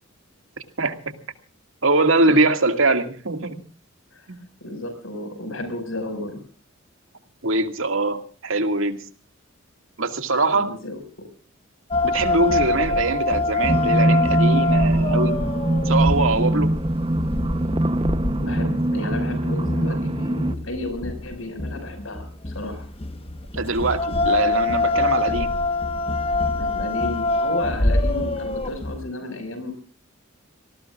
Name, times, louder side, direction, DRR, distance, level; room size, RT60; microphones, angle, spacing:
voice 1, 0.8-1.1 1.8-3.6 4.3-4.4 7.4-9.0 10.0-10.7 12.0-15.4 15.9-16.7 23.5-25.5, right 2 dB, 75° right, 7 dB, 2.1 m, -22 dB
voice 2, 4.6-6.4 10.5-11.2 18.3-22.9 26.5-29.7, left 2 dB, 75° left, 7 dB, 5.6 m, -33 dB
sound 1, 11.9-29.0, left 2 dB, 30° left, 1.2 m, -25 dB
sound 2, 13.7-20.5, right 1 dB, 25° right, 0.8 m, -22 dB
26.5 x 19.5 x 2.5 m, 0.42 s
head